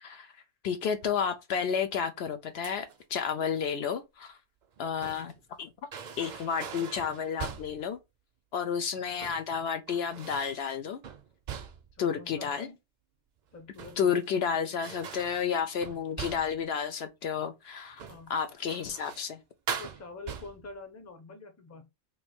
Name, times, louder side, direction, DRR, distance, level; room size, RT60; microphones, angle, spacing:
voice 1, 0.0-0.3 0.6-2.9 3.1-4.4 4.8-5.7 6.2-8.0 8.5-11.0 12.0-12.7 14.0-18.0 18.3-19.4, left 7 dB, 70° left, 0.8 m, -31 dB
sound 1, 2.6-3.0 4.6-5.4 5.9-7.9 9.0-9.5 9.9-10.7 11.0-12.0 13.5-14.3 14.8-16.7 17.9-18.3 18.7-19.3 19.7-20.7, right 7 dB, 55° right, 0.5 m, -41 dB
voice 2, 11.9-12.8 13.5-14.1 17.2-17.3 18.1-18.3 19.8-21.9, left 3 dB, 20° left, 0.6 m, -46 dB
3.1 x 2.7 x 4.2 m
omnidirectional pair, 1.2 m